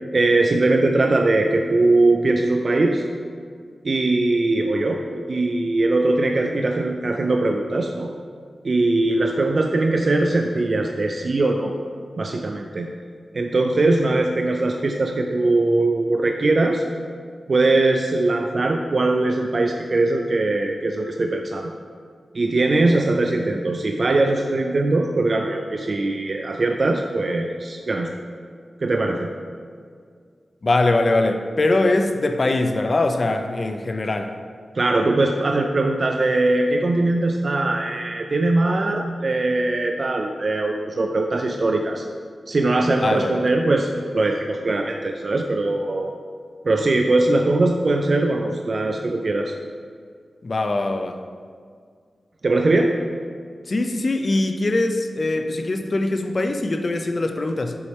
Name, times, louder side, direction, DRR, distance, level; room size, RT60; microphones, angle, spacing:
voice 1, 0.1-3.1 3.8-8.1 8.6-11.8 12.2-12.9 13.3-16.8 17.5-21.7 22.3-28.1 28.8-29.3 34.7-42.0 42.5-46.1 46.6-49.5 52.4-53.0, right 2 dB, 55° right, 3 dB, 0.3 m, -21 dB
voice 2, 30.6-34.3 43.0-43.5 50.4-51.2 53.7-57.8, left 2 dB, 50° left, 6 dB, 0.5 m, -22 dB
7.0 x 3.3 x 4.3 m, 2.1 s
cardioid pair, 65°, 0 cm